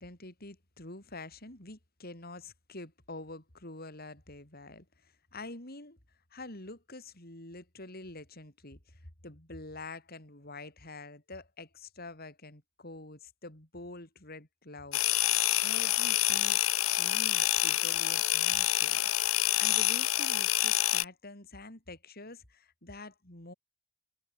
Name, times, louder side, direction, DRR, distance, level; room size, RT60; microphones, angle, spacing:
voice 1, 0.0-6.0 6.3-23.5, left 2 dB, 45° left, 5.4 m, -47 dB
sound 1, 14.9-21.1, left 14 dB, 80° left, 1.0 m, -27 dB
head